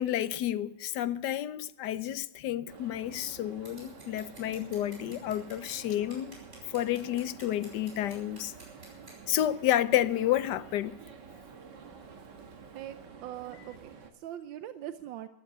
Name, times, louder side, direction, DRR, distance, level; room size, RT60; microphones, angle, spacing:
voice 1, 0.0-6.4 6.7-8.5 9.3-11.0, left 12 dB, 70° left, 1.2 m, -30 dB
sound 1, 2.7-14.1, right 5 dB, 70° right, 2.1 m, -50 dB
Scissors, 3.7-9.2, right 1 dB, 35° right, 5.6 m, -53 dB
voice 2, 12.7-15.3, right 12 dB, 90° right, 1.4 m, -42 dB
15.0 x 12.0 x 6.0 m
omnidirectional pair, 2.0 m